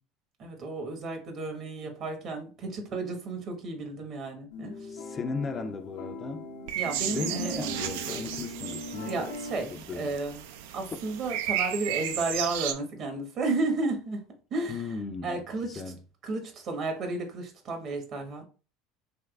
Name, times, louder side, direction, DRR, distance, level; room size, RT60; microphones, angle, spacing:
voice 1, 0.4-4.7 6.7-7.5 9.1-9.7 10.0-10.4 10.7-14.2 14.5-14.8 15.2-15.8 16.2-18.4, right 3 dB, 50° right, 1.1 m, -32 dB
sound 1, 4.5-9.6, left 2 dB, 85° left, 0.7 m, -41 dB
voice 2, 4.9-6.5 7.1-9.2 9.7-10.2 10.9-11.0 14.7-16.0, left 4 dB, 30° left, 0.4 m, -36 dB
sound 2, 6.7-12.7, right 10 dB, 75° right, 0.3 m, -34 dB
3.5 x 3.1 x 2.3 m
hypercardioid pair, 85°, 0 cm